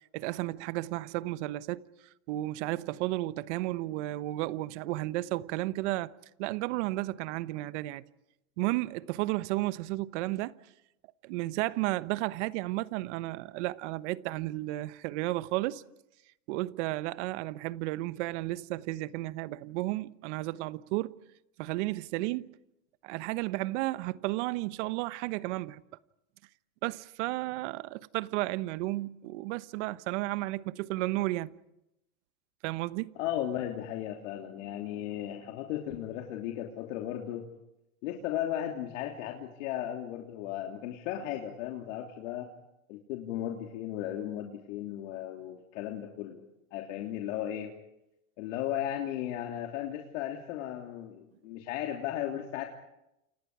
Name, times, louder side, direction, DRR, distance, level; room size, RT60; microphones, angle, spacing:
voice 1, 0.1-1.8 2.3-6.1 6.4-8.0 8.6-10.5 11.2-15.8 16.5-21.1 21.6-22.5 23.0-25.8 26.8-31.5 32.6-33.1, right 18 dB, 55° right, 1.2 m, -33 dB
voice 2, 33.1-37.5 38.0-42.5 42.9-46.4 46.7-47.7 48.4-52.7, left 11 dB, 60° left, 3.3 m, -35 dB
29.5 x 28.5 x 5.0 m
hypercardioid pair, 125°, 43 cm